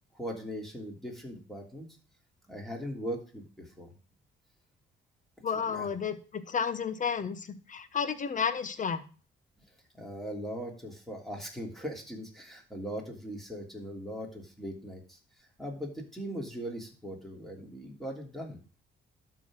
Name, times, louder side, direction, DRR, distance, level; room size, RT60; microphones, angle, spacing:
voice 1, 0.1-1.9 2.5-3.9 5.7-5.9 9.9-15.2 15.6-18.6, equal, ahead, 0 dB, 3.1 m, -39 dB
voice 2, 5.4-9.0, left 6 dB, 40° left, 11 dB, 1.1 m, -32 dB
12.0 x 4.1 x 6.3 m, 0.38 s
cardioid pair, 90°, 20 cm